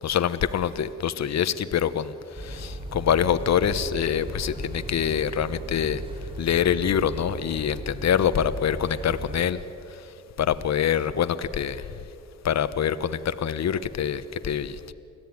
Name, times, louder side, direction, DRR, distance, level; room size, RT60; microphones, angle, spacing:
voice 1, 0.0-6.0 6.4-9.6 9.9-10.1 10.4-12.0 12.4-14.9, left 8 dB, 60° left, 12 dB, 1.1 m, -25 dB
sound 1, 2.3-9.5, right 1 dB, 15° right, 4.0 m, -37 dB
24.0 x 16.5 x 9.6 m, 2.7 s
cardioid pair, 85°, 30 cm